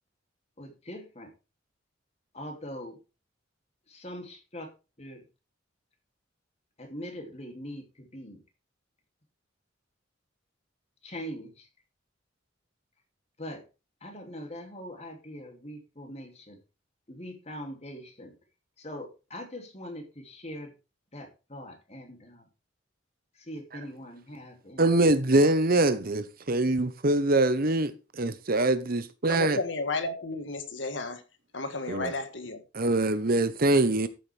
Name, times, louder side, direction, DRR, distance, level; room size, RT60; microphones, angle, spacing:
voice 1, 0.6-1.3 2.3-3.0 3.9-4.7 5.0-5.2 6.8-8.4 11.0-11.7 13.4-13.6 14.0-16.6 17.1-18.4 18.8-20.7 21.1-22.5 23.3-25.0 25.4-25.5 25.8-26.0, equal, 35° left, 2.8 m, -42 dB
voice 2, 24.8-29.6 31.9-32.1 32.7-34.1, right 2 dB, 50° right, 1.0 m, -24 dB
voice 3, 29.3-31.2 31.5-32.6, left 3 dB, 65° left, 1.6 m, -33 dB
13.5 x 7.6 x 3.5 m
head